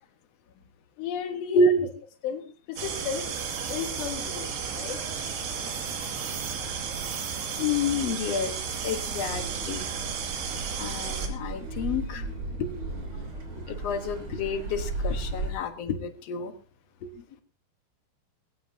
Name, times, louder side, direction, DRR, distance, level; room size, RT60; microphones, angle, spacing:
voice 1, 1.0-1.7 2.2-4.5 4.8-5.0, left 8 dB, 85° left, 3 dB, 3.9 m, -34 dB
voice 2, 1.5-1.9 5.6-5.9 7.6-9.9 10.8-12.3 12.6-12.7 13.1-13.2 13.7-16.5 17.0-17.2, left 2 dB, 60° left, 7 dB, 1.7 m, -29 dB
sound 1, 2.8-11.3, right 6 dB, 75° right, 4.4 m, -33 dB
Car passing by / Accelerating revving vroom, 9.3-15.5, right 2 dB, 30° right, 3.8 m, -35 dB
20.5 x 17.0 x 2.8 m, 0.34 s
omnidirectional pair, 4.8 m